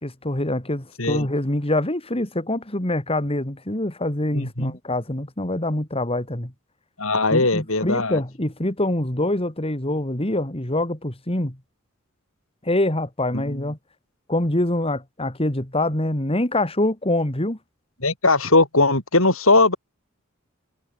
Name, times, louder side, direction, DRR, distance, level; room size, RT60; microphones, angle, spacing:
voice 1, 0.0-6.5 7.3-11.6 12.6-13.8 14.3-17.6, left 1 dB, 30° left, 3.0 m, -25 dB
voice 2, 4.3-4.8 7.0-8.2 13.5-13.6 18.0-19.8, left 2 dB, 85° left, 7.5 m, -19 dB
head